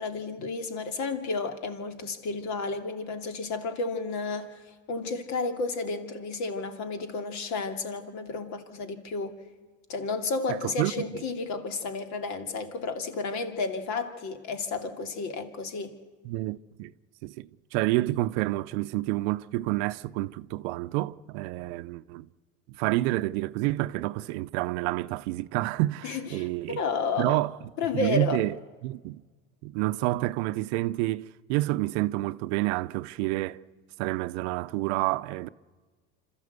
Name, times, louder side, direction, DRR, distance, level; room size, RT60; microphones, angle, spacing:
voice 1, 0.0-9.3 9.9-16.0 26.0-27.4 27.8-28.4, left 4 dB, 55° left, 2.6 m, -32 dB
voice 2, 10.5-11.1 16.2-16.9 17.2-22.3 22.8-26.8 27.2-27.5 27.9-28.6 28.8-29.2 29.6-33.6 34.0-35.5, right 18 dB, 80° right, 0.7 m, -29 dB
26.5 x 14.0 x 8.1 m
supercardioid pair, 115°, 34 cm